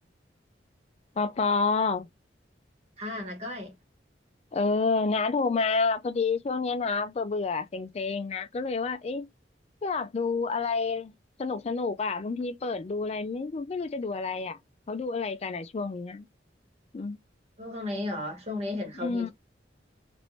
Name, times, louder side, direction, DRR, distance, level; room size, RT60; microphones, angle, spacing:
voice 1, 1.2-2.1 4.5-9.3 9.8-11.1 11.4-14.6 14.9-16.2 16.9-17.2 19.0-19.3, left 4 dB, 35° left, 0.4 m, -29 dB
voice 2, 3.0-3.8 17.6-19.3, left 2 dB, 35° right, 1.2 m, -34 dB
3.2 x 2.5 x 3.0 m
head